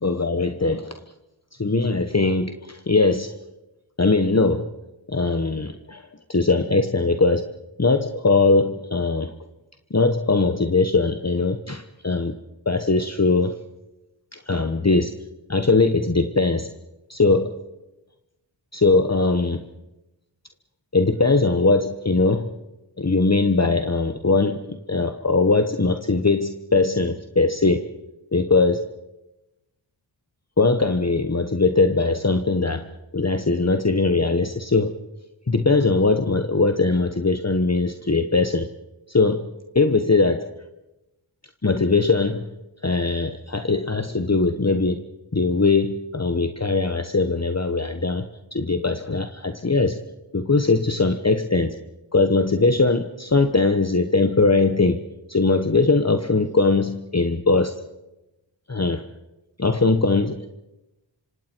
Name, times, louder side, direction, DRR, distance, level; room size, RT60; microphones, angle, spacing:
voice 1, 0.0-0.9 1.6-3.3 4.0-4.7 5.1-6.0 6.3-7.5 7.8-9.3 9.9-12.3 12.7-13.6 14.3-15.2 15.5-16.7 17.1-17.5 18.7-19.6 20.9-22.5 23.0-27.9 28.3-28.9 30.6-32.9 33.1-34.9 35.5-38.7 39.1-39.5 39.7-40.5 41.6-42.5 42.8-45.1 45.3-50.0 50.3-51.8 52.1-55.0 55.3-57.7 58.7-59.0 59.6-60.5, left 3 dB, 35° left, 7 dB, 1.1 m, -20 dB
26.0 x 26.0 x 4.6 m, 0.96 s
wide cardioid pair, 50°, 46 cm